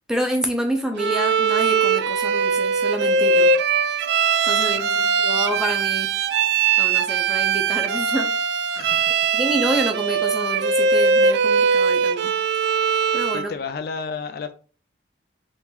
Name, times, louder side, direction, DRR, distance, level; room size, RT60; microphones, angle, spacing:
voice 1, 0.1-3.5 4.4-6.1 6.8-8.3 8.8-8.9 9.3-12.3 13.1-13.5, equal, 5° right, 0.6 m, -28 dB
Bowed string instrument, 1.0-13.5, right 5 dB, 60° right, 0.3 m, -20 dB
voice 2, 4.7-5.1 8.7-9.2 13.3-14.5, left 5 dB, 50° left, 0.4 m, -32 dB
3.8 x 2.7 x 4.4 m
head